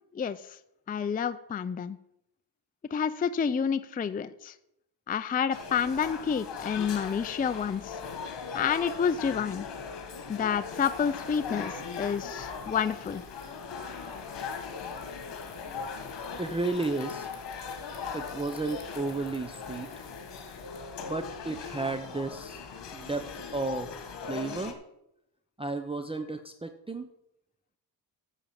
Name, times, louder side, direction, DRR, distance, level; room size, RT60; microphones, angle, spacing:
voice 1, 0.1-0.6 0.9-2.0 2.9-4.5 5.1-8.0 8.5-9.7 10.3-13.2, left 7 dB, 20° left, 12 dB, 0.4 m, -29 dB
sound 1, 5.5-24.7, left 5 dB, 65° left, 1.9 m, -39 dB
Bicycle, 10.5-21.0, left 5 dB, 45° left, 2.6 m, -55 dB
voice 2, 16.4-17.3 18.1-19.9 21.0-22.6 22.9-23.9 24.2-24.7 25.6-27.1, right 3 dB, 15° right, 8 dB, 0.7 m, -33 dB
9.1 x 7.0 x 7.5 m, 0.81 s
cardioid pair, 100°, 44 cm